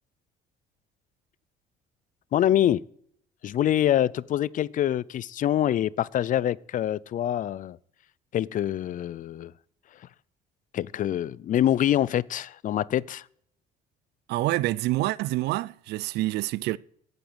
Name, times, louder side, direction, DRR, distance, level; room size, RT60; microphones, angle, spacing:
voice 1, 2.3-2.8 3.4-7.8 8.3-9.5 10.7-13.2, left 11 dB, 50° left, 0.6 m, -25 dB
voice 2, 14.3-16.8, right 17 dB, 80° right, 0.5 m, -27 dB
17.5 x 9.1 x 8.0 m
cardioid pair, 110°, 17 cm